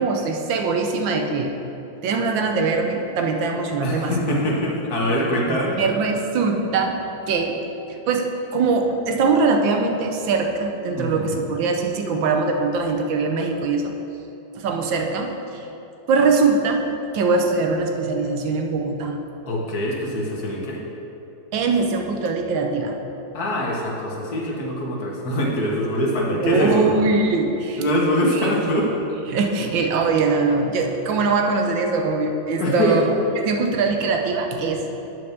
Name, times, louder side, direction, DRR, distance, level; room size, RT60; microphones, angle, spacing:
voice 1, 0.0-1.5 2.0-4.4 5.5-7.0 7.3-7.6 8.1-13.9 14.5-15.6 16.1-16.9 17.1-19.2 21.5-23.0 26.3-27.8 28.3-28.7 29.3-34.9, right 4 dB, 85° right, 4 dB, 1.5 m, -22 dB
voice 2, 3.8-5.8 11.0-11.4 19.5-20.8 23.3-26.9 27.8-28.9 32.5-33.0, equal, 55° left, -3 dB, 1.7 m, -23 dB
9.3 x 4.6 x 6.5 m, 2.9 s
omnidirectional pair, 2.0 m